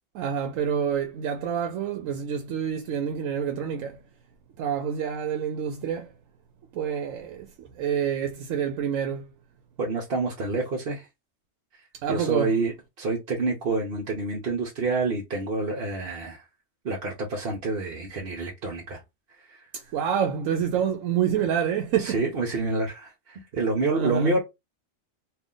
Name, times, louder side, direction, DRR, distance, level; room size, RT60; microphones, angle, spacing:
voice 1, 0.1-4.0 4.6-6.1 6.7-9.3 12.0-12.6 19.7-22.2 23.9-24.4, right 8 dB, 85° right, 1.0 m, -27 dB
voice 2, 9.8-11.1 12.1-16.4 16.8-19.0 19.5-19.7 22.0-24.4, right 3 dB, 55° right, 1.0 m, -28 dB
3.4 x 2.4 x 3.7 m
omnidirectional pair, 1.3 m